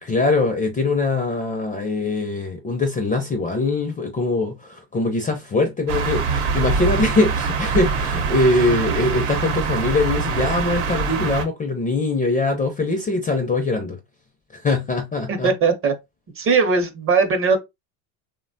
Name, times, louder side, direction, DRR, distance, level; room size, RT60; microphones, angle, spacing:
voice 1, 0.0-14.0 14.5-15.5, left 2 dB, 20° left, 0.4 m, -22 dB
sound 1, 5.9-11.4, right 5 dB, 70° right, 0.9 m, -24 dB
voice 2, 15.3-15.9 16.4-17.6, right 4 dB, 30° right, 0.6 m, -19 dB
3.0 x 2.2 x 2.5 m
supercardioid pair, 100°, 45 cm